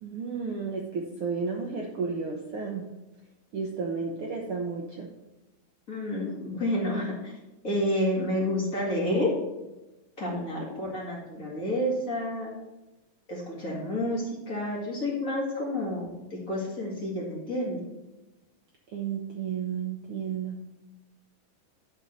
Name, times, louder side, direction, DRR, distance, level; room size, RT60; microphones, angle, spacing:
voice 1, 0.0-2.9 3.5-5.1 18.9-20.6, right 5 dB, 85° right, 0 dB, 1.2 m, -32 dB
voice 2, 5.9-7.3 7.6-9.3 10.2-12.5 13.3-17.9, left 1 dB, 30° left, -4 dB, 2.1 m, -29 dB
11.0 x 4.1 x 6.3 m, 1.0 s
omnidirectional pair, 3.8 m